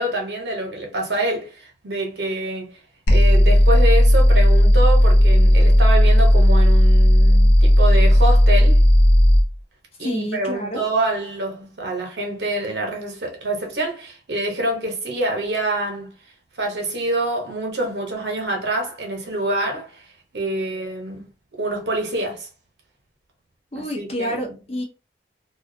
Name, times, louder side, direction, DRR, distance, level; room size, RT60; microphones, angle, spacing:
voice 1, 0.0-2.7 3.1-8.8 10.0-16.1 16.6-20.0 20.3-21.2 21.6-22.5 23.7-24.6, right 1 dB, 75° right, 0.8 m, -26 dB
sound 1, 3.1-9.5, equal, 80° left, 0.7 m, -13 dB
voice 2, 10.0-10.8 23.7-24.8, equal, 35° left, 0.6 m, -28 dB
2.3 x 2.3 x 2.5 m
head